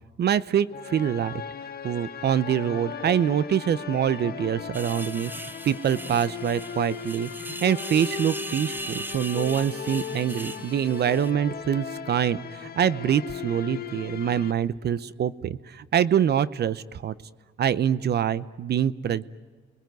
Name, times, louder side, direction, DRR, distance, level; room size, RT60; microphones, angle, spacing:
voice 1, 0.2-1.4 1.8-17.1 17.6-19.2, right 9 dB, 55° right, 17 dB, 0.8 m, -25 dB
sound 1, 0.7-14.5, left 8 dB, 50° left, 1.5 m, -37 dB
sound 2, 4.7-11.3, right 2 dB, 10° right, 1.0 m, -39 dB
30.0 x 20.5 x 9.3 m, 1.5 s
cardioid pair, 90°, 20 cm